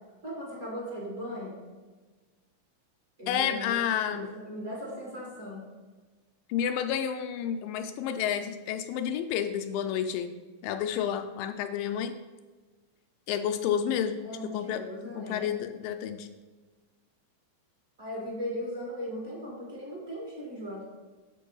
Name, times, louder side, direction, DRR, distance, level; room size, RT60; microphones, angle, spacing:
voice 1, 0.2-1.6 3.2-5.6 14.2-15.5 18.0-20.8, equal, 35° right, -5 dB, 1.1 m, -38 dB
voice 2, 3.3-4.3 6.5-10.3 10.6-12.1 13.3-14.2 14.5-14.8 15.1-16.3, left 9 dB, 80° left, 7 dB, 2.2 m, -30 dB
7.1 x 5.4 x 5.4 m, 1.3 s
omnidirectional pair, 4.1 m